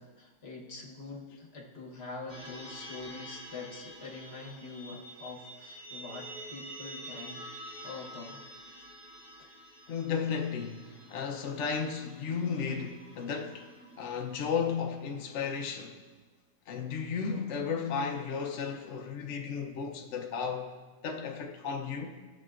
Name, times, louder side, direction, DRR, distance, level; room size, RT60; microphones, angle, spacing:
voice 1, 0.0-7.5 7.8-8.4, left 3 dB, 40° left, 1.2 m, -44 dB
sound 1, 2.3-14.8, equal, 35° right, 3.1 m, -48 dB
voice 2, 9.9-13.7 14.0-16.0 16.7-20.7 21.0-22.2, left 6 dB, 60° left, 0.8 m, -34 dB
14.5 x 7.3 x 2.4 m
omnidirectional pair, 1.9 m